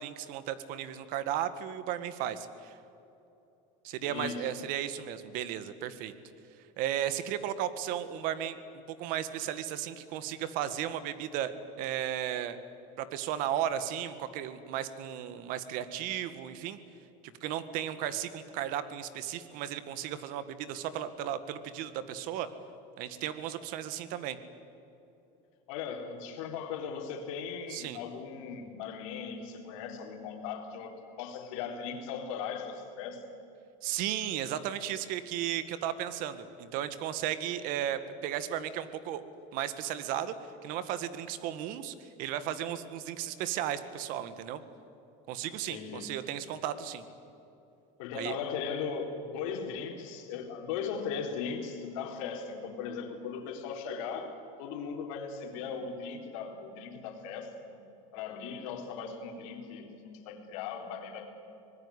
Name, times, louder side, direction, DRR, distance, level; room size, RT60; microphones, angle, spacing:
voice 1, 0.0-2.8 3.8-6.1 6.8-8.6 8.9-12.6 13.0-16.8 17.2-22.5 23.0-24.4 27.7-28.0 33.8-39.2 39.5-40.3 40.6-44.6 45.3-47.0 48.1-48.4, right 10 dB, 55° right, 12 dB, 1.8 m, -35 dB
voice 2, 4.0-4.5 25.7-33.2 45.7-46.1 48.0-57.8 58.1-61.3, left 6 dB, 75° left, 3 dB, 4.1 m, -38 dB
25.0 x 20.0 x 10.0 m, 2.9 s
cardioid pair, 155°, 17 cm